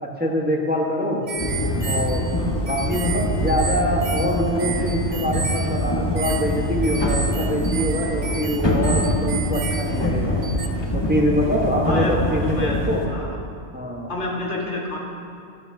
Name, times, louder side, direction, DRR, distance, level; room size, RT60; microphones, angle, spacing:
voice 1, 0.0-1.2 1.9-2.2 2.7-10.3 10.9-13.0 13.7-14.1, equal, 10° right, -2 dB, 1.2 m, -24 dB
sound 1, 1.3-10.7, right 5 dB, 60° right, 0.8 m, -33 dB
sound 2, 1.4-13.1, left 1 dB, 25° left, 1.1 m, -24 dB
voice 2, 2.4-2.7 11.9-13.4 14.1-15.0, left 2 dB, 85° left, -2 dB, 1.9 m, -30 dB
13.0 x 12.5 x 2.8 m, 2.4 s
omnidirectional pair, 1.2 m